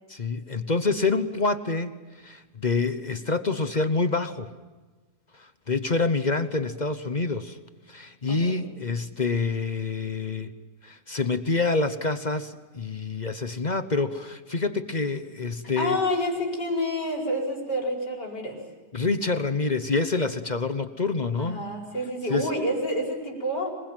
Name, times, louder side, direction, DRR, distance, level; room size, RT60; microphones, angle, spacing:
voice 1, 0.1-4.5 5.3-7.6 7.9-10.5 10.8-16.0 18.9-21.7 22.3-22.5, left 3 dB, 35° left, 11 dB, 0.8 m, -27 dB
voice 2, 8.3-8.6 15.8-18.6 21.4-23.7, left 1 dB, 85° left, 0 dB, 5.6 m, -28 dB
26.5 x 21.0 x 9.1 m, 1.3 s
omnidirectional pair, 1.8 m